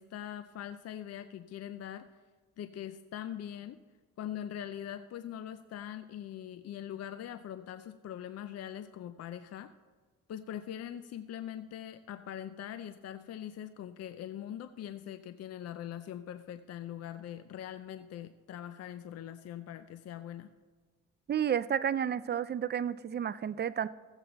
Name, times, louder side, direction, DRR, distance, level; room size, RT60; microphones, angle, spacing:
voice 1, 0.0-2.1 2.6-3.8 4.2-9.7 10.3-20.5, left 10 dB, 55° left, 11 dB, 0.5 m, -42 dB
voice 2, 21.3-23.9, right 9 dB, 35° right, 16 dB, 0.4 m, -31 dB
14.5 x 8.1 x 3.9 m, 1.5 s
cardioid pair, 90°, 30 cm